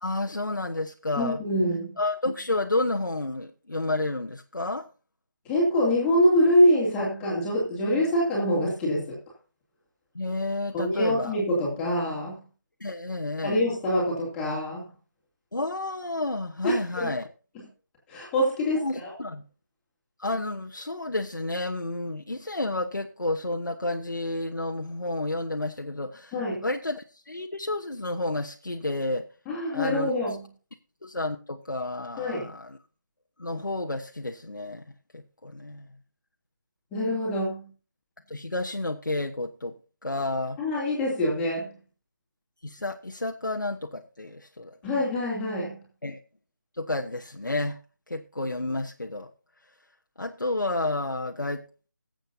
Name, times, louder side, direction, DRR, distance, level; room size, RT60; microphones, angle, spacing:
voice 1, 0.0-1.4 2.0-4.9 10.1-11.3 12.8-13.6 15.5-17.3 18.8-19.4 20.2-26.3 26.6-29.3 29.7-30.1 31.0-32.7 33.4-34.8 35.1-35.9 38.3-39.7 40.0-40.6 42.6-44.7 46.0-46.2 46.8-47.8 48.1-49.3 50.2-51.6, left 2 dB, 85° left, 1.1 m, -30 dB
voice 2, 1.2-2.0 5.4-9.2 10.7-12.4 13.4-14.9 16.6-17.1 18.1-19.1 26.3-26.6 29.5-30.5 32.2-32.5 36.9-37.7 40.6-41.7 44.8-45.8, equal, 10° left, 2.6 m, -25 dB
21.5 x 7.8 x 2.7 m
figure-of-eight pair, 160°, 10 cm